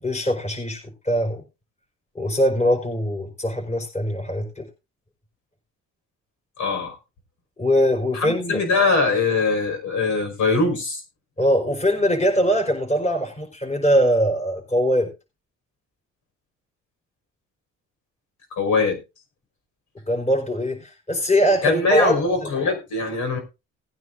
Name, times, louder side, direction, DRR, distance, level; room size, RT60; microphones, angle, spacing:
voice 1, 0.0-1.4 2.2-4.7 7.6-8.6 11.4-15.1 20.1-22.5, equal, 20° left, 1 dB, 5.1 m, -22 dB
voice 2, 6.6-7.0 8.1-11.0 18.5-19.0 21.6-23.4, left 3 dB, 75° left, 4 dB, 5.5 m, -22 dB
19.0 x 9.5 x 2.6 m, 0.28 s
cardioid pair, 90°, 30 cm